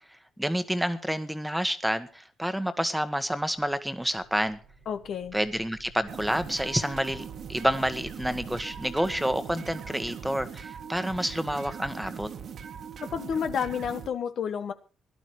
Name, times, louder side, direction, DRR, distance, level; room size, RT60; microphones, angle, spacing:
voice 1, 0.4-4.6 5.3-7.2 7.5-12.3, equal, 5° right, 10 dB, 1.4 m, -29 dB
sound 1, 3.4-9.2, right 5 dB, 85° right, 3.0 m, -51 dB
voice 2, 4.9-5.4 13.0-14.7, left 7 dB, 65° left, 9 dB, 1.3 m, -30 dB
sound 2, 6.1-14.1, right 7 dB, 60° right, 1.8 m, -41 dB
17.0 x 11.5 x 4.7 m, 0.35 s
cardioid pair, 90°, 0 cm